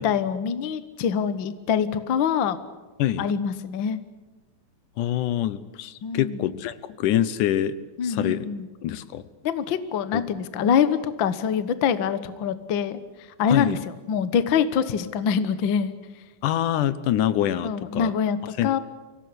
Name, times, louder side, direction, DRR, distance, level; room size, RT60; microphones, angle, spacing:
voice 1, 0.0-2.6 3.2-4.0 6.0-6.5 8.0-8.7 9.4-15.9 17.6-18.8, left 7 dB, 60° left, 13 dB, 1.3 m, -25 dB
voice 2, 5.0-7.8 8.0-8.5 8.8-9.2 10.1-10.2 13.5-13.8 16.4-18.1 18.6-18.8, left 11 dB, 80° left, 16 dB, 2.4 m, -25 dB
25.0 x 17.5 x 9.7 m, 1.2 s
omnidirectional pair, 3.6 m